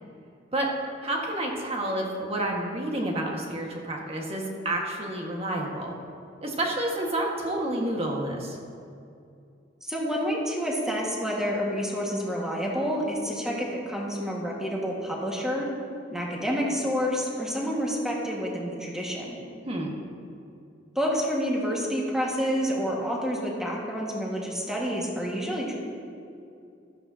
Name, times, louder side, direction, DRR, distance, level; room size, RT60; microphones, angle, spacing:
voice 1, 1.0-5.9 6.4-8.6 19.6-19.9, right 1 dB, 35° right, -1 dB, 1.6 m, -29 dB
voice 2, 9.9-15.7 16.1-19.3 20.9-25.7, equal, 5° right, -3 dB, 1.7 m, -28 dB
14.0 x 12.0 x 2.8 m, 2.5 s
head